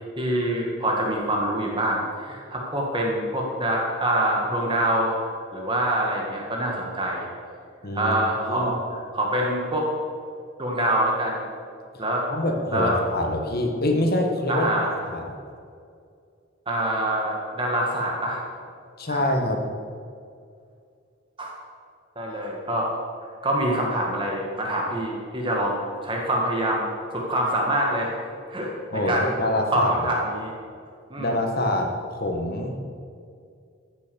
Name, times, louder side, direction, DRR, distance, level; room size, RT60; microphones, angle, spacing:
voice 1, 0.2-5.2 5.5-7.3 7.9-9.9 10.6-11.4 12.0-12.3 12.7-13.0 14.5-15.0 16.7-18.4 19.1-19.3 21.4-21.5 22.2-22.9 23.4-28.1 28.5-28.7 29.1-29.3 29.7-30.5 31.1-31.3, right 1 dB, 25° right, -1 dB, 1.7 m, -25 dB
voice 2, 7.8-8.2 8.5-8.7 12.3-14.7 15.0-15.2 19.0-19.6 28.9-29.9 31.2-32.8, left 1 dB, 50° left, 3 dB, 1.5 m, -25 dB
14.5 x 6.8 x 7.0 m, 2.3 s
head